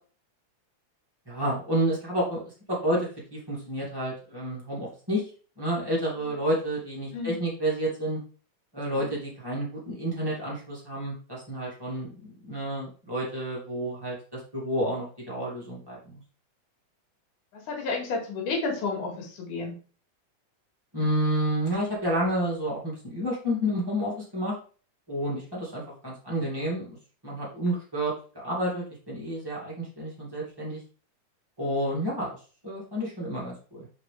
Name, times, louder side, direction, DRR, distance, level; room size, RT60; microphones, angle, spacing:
voice 1, 1.3-2.4 2.7-5.2 5.6-8.2 8.7-16.2 20.9-24.5 25.1-26.9 27.2-30.8 31.6-32.3 32.6-33.9, right 1 dB, 10° right, -6 dB, 2.0 m, -30 dB
voice 2, 17.5-19.7 31.6-31.7, left 4 dB, 80° left, 1 dB, 3.2 m, -32 dB
6.1 x 4.5 x 3.4 m, 0.39 s
omnidirectional pair, 3.5 m